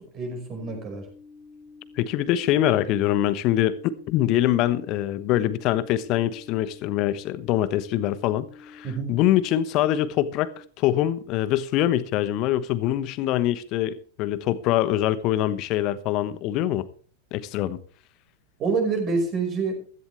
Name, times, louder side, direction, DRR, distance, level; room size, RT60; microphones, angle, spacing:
voice 1, 0.1-1.1 8.8-9.1 18.6-19.8, right 4 dB, 30° right, 5.3 m, -27 dB
sound 1, 0.6-10.6, left 4 dB, 85° right, 4.5 m, -49 dB
voice 2, 2.0-16.8 17.3-17.8, left 13 dB, 40° left, 1.1 m, -24 dB
16.0 x 14.0 x 3.4 m
figure-of-eight pair, 90°, 0 cm